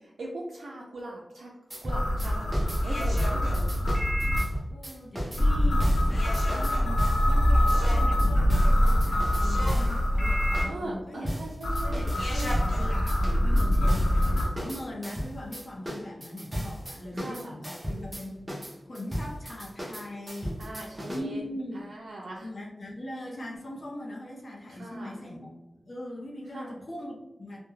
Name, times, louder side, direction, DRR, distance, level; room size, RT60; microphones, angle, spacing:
voice 1, 0.0-1.5 1.8-3.8 10.7-12.1 17.1-17.6 20.6-21.4 21.7-22.5 24.7-25.2 26.5-26.8, right 1 dB, 80° right, -3 dB, 0.3 m, -40 dB
sound 1, 1.7-7.3 7.7-10.0 10.5-10.7 11.2-12.8 13.1-21.2, equal, 20° right, 0.5 m, -36 dB
sound 2, 1.9-4.4 5.4-10.6 11.6-14.4, equal, 70° left, 0.8 m, -24 dB
voice 2, 4.7-11.4 11.8-18.4 18.9-21.9 22.4-25.5 25.8-27.6, left 1 dB, 45° left, -1 dB, 0.5 m, -40 dB
2.2 x 2.1 x 3.0 m, 1.0 s
wide cardioid pair, 105°, 0 cm